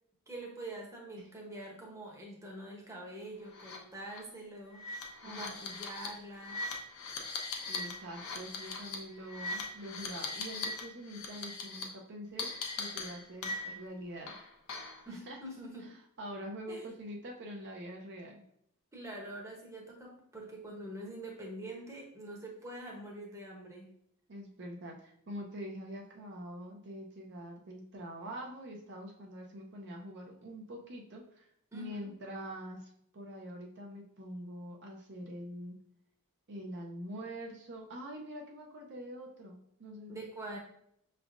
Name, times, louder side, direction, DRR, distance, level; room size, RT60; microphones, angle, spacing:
voice 1, 0.3-4.8 5.2-6.6 15.1-15.9 16.7-16.8 18.9-23.9 31.7-32.1 40.1-40.6, right 1 dB, 15° right, -1 dB, 0.9 m, -45 dB
sound 1, 3.5-3.8 4.1-4.2 4.7-10.8 11.1-11.8 12.4-13.9 14.3-15.0, left 3 dB, 70° left, 0.8 m, -40 dB
voice 2, 5.2-5.6 7.7-14.3 15.1-15.4 16.2-18.4 24.3-35.8 36.5-40.2, equal, 50° right, 1 dB, 0.7 m, -45 dB
6.0 x 3.2 x 2.5 m, 0.72 s
head